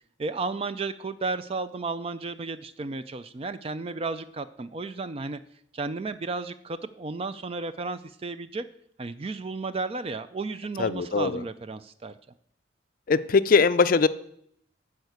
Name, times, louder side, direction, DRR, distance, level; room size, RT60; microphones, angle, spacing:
voice 1, 0.2-5.4 5.7-8.7 9.0-12.1, right 3 dB, 30° right, 12 dB, 0.3 m, -33 dB
voice 2, 10.8-11.4 13.1-14.1, left 4 dB, 45° left, 14 dB, 0.4 m, -21 dB
11.0 x 4.8 x 8.1 m, 0.69 s
head